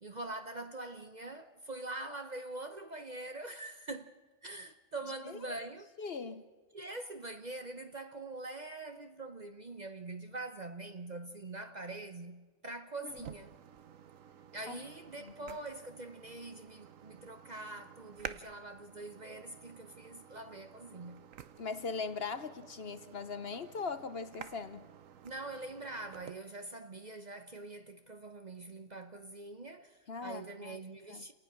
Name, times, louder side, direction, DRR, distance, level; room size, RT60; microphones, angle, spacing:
voice 1, 0.0-4.1 4.4-5.9 6.7-13.6 14.5-21.2 25.2-31.3, right 2 dB, 40° right, 0.8 m, -44 dB
voice 2, 5.2-5.6 6.0-6.4 13.0-13.3 14.7-14.8 15.2-15.3 21.6-24.9 30.1-30.8 31.1-31.2, left 4 dB, 50° left, 1.0 m, -40 dB
sound 1, 13.1-26.3, right 8 dB, 75° right, 1.3 m, -52 dB
30.0 x 18.5 x 6.1 m
omnidirectional pair, 1.4 m